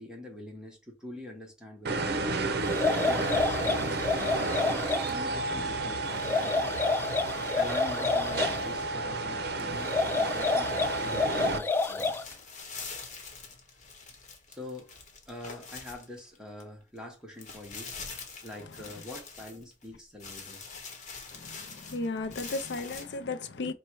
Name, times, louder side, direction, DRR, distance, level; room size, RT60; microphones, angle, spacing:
voice 1, 0.0-2.5 3.0-6.7 7.5-12.1 14.5-14.9 15.3-17.9 18.4-20.7, left 1 dB, 5° right, 1.0 m, -44 dB
sound 1, 1.8-11.6, right 2 dB, 65° right, 0.6 m, -31 dB
sound 2, 2.6-5.1 6.1-8.6 9.8-12.3, left 4 dB, 10° left, 0.3 m, -29 dB
sound 3, 11.7-16.6 17.0-17.1 17.4-19.9 20.2-23.1, left 4 dB, 45° left, 1.0 m, -44 dB
voice 2, 21.3-23.7, left 3 dB, 70° left, 0.5 m, -35 dB
4.3 x 2.2 x 4.5 m
head